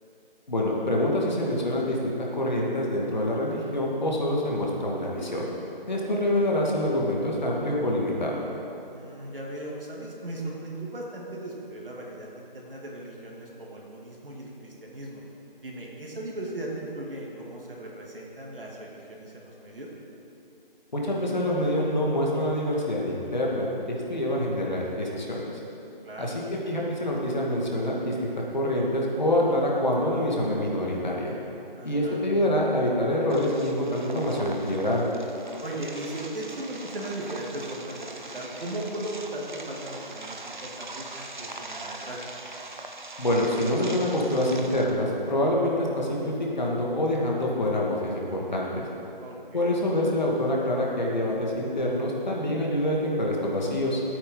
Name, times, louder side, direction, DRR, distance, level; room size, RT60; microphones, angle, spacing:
voice 1, 0.5-5.5 5.9-8.4 20.9-25.4 26.2-31.3 31.8-35.0 43.2-48.9 49.5-54.0, left 1 dB, 50° left, -3 dB, 2.2 m, -26 dB
voice 2, 8.9-15.2 15.6-19.9 26.0-26.4 31.7-32.2 35.6-42.2 49.2-49.8, right 1 dB, 70° right, -3 dB, 2.7 m, -37 dB
sound 1, 33.3-44.9, right 2 dB, 55° right, 1.0 m, -41 dB
16.0 x 8.8 x 4.0 m, 3.0 s
figure-of-eight pair, 175°, 29 cm